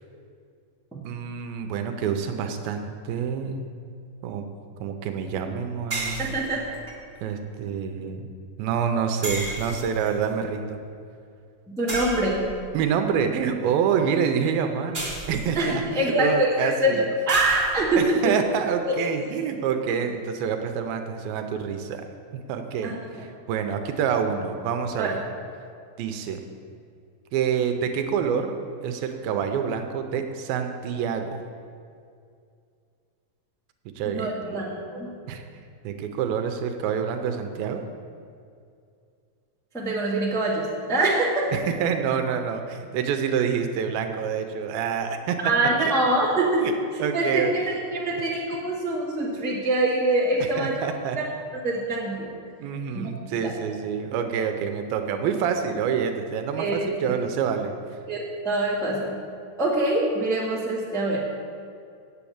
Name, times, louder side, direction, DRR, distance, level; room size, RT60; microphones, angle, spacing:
voice 1, 1.0-3.7 4.2-4.5 4.8-6.2 7.2-8.3 8.6-10.8 12.7-17.1 18.0-22.0 22.5-25.2 26.0-26.4 27.3-31.3 34.0-34.3 35.3-35.4 35.8-37.8 41.5-45.4 45.8-45.9 46.6-46.7 47.0-47.5 50.6-51.2 52.6-57.7, right 7 dB, 85° right, 6 dB, 2.5 m, -27 dB
sound 1, 5.9-6.9 9.2-10.2 11.9-12.7 14.9-15.8 17.3-18.0, right 2 dB, 55° right, 0.5 m, -33 dB
voice 2, 6.2-6.6 11.7-12.5 15.5-18.2 18.8-18.9 22.8-22.9 25.0-25.1 34.0-35.1 39.7-41.5 45.4-46.6 47.1-50.8 51.6-52.3 52.9-53.0 53.4-53.5 56.6-56.7 57.0-57.1 58.1-59.2 59.6-61.3, right 2 dB, ahead, -6 dB, 1.0 m, -24 dB
8.2 x 7.8 x 8.7 m, 2.3 s
omnidirectional pair, 4.3 m